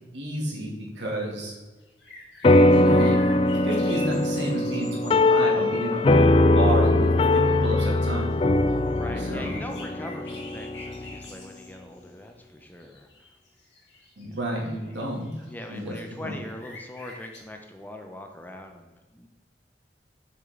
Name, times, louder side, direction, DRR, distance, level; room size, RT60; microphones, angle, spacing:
voice 1, 0.1-1.5 2.7-3.2 3.6-8.3 9.1-9.5 14.2-15.3 15.7-16.4, right 1 dB, 90° right, -3 dB, 2.6 m, -31 dB
sound 1, 1.8-5.6 7.0-7.1 7.3-7.5 7.8-12.1 12.6-17.4, left 2 dB, 90° left, 2.4 m, -46 dB
sound 2, 2.4-11.2, left 2 dB, 30° left, 0.3 m, -21 dB
voice 2, 5.5-6.3 8.9-13.1 14.3-15.0 15.4-19.3, left 1 dB, 10° left, 4 dB, 0.7 m, -41 dB
7.4 x 6.7 x 3.8 m, 1.2 s
head